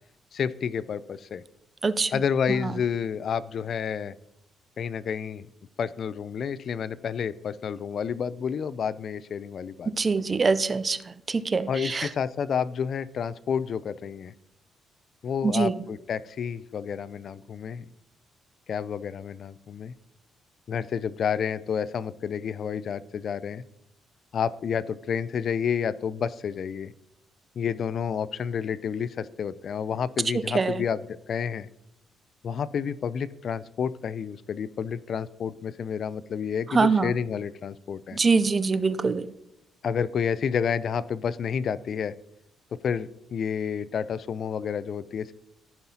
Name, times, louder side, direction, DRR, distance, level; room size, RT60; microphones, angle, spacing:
voice 1, 0.3-1.4 2.1-4.1 4.8-5.5 5.8-9.9 11.7-14.3 15.2-17.9 18.7-19.9 20.7-23.6 24.3-26.9 27.6-31.7 32.4-38.2 39.8-42.1 42.8-45.3, left 7 dB, 55° left, 17 dB, 0.3 m, -30 dB
voice 2, 9.9-11.0 11.3-12.1 15.4-15.7 30.3-30.8 36.7-37.1 38.1-39.3, right 4 dB, 30° right, 15 dB, 0.4 m, -24 dB
14.5 x 5.6 x 2.8 m, 0.82 s
cardioid pair, 90°, 0 cm